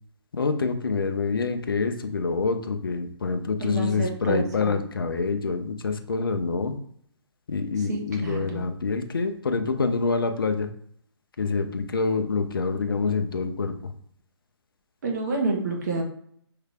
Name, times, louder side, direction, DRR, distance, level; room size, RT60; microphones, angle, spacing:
voice 1, 0.3-6.7 7.5-10.7 11.4-13.9, left 4 dB, 50° left, 7 dB, 0.6 m, -26 dB
voice 2, 3.6-4.8 7.9-8.7 15.0-16.0, right 3 dB, 40° right, 1 dB, 0.9 m, -28 dB
5.7 x 3.2 x 2.4 m, 0.64 s
figure-of-eight pair, 140°, 15 cm